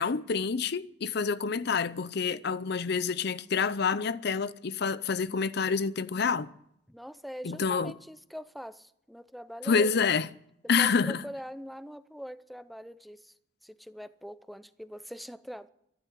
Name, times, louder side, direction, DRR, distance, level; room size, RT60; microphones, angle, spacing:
voice 1, 0.0-6.5 7.4-7.9 9.6-10.3 10.7-11.2, left 5 dB, 60° left, 0.6 m, -28 dB
voice 2, 6.9-9.9 10.8-13.3 13.6-15.7, equal, ahead, 0.5 m, -43 dB
13.0 x 11.5 x 9.3 m
head